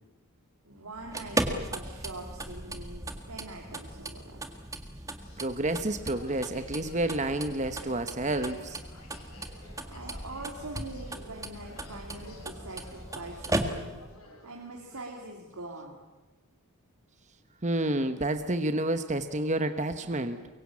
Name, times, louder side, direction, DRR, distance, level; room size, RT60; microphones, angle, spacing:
voice 1, 0.6-4.4 9.8-16.0, right 2 dB, 85° right, 0 dB, 3.2 m, -43 dB
sound 1, 0.9-14.1, right 1 dB, 15° right, 1.8 m, -37 dB
sound 2, 5.2-15.1, left 2 dB, 85° left, 7.2 m, -52 dB
voice 2, 5.4-8.8 17.6-20.5, right 1 dB, 30° right, 9 dB, 1.2 m, -29 dB
24.0 x 23.0 x 8.6 m, 1.1 s
head